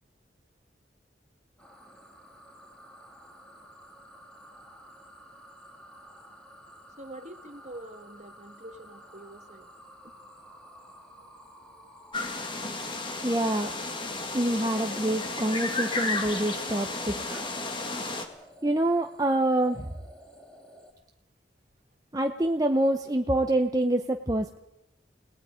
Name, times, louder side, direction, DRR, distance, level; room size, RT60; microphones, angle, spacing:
sound 1, 1.6-20.9, equal, 5° left, 2.8 m, -52 dB
voice 1, 7.0-9.7, right 1 dB, 40° right, 8 dB, 1.5 m, -45 dB
sound 2, 12.1-18.3, left 3 dB, 25° left, 2.0 m, -33 dB
voice 2, 13.2-13.7 14.3-17.4 18.6-19.9 22.1-24.6, right 1 dB, 20° right, 4 dB, 0.8 m, -26 dB
30.0 x 19.0 x 5.1 m, 0.84 s
head